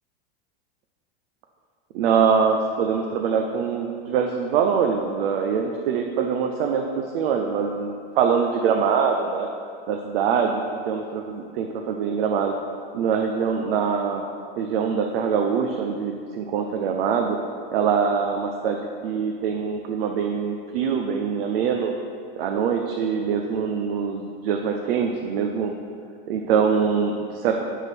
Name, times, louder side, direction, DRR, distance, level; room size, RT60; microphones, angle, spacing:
voice 1, 1.9-9.5 9.9-12.5 12.9-14.2 14.6-17.4 17.7-21.9 22.4-25.7 26.3-27.6, right 6 dB, 75° right, 3 dB, 0.6 m, -24 dB
8.2 x 3.8 x 5.9 m, 2.3 s
supercardioid pair, 150°, 30 cm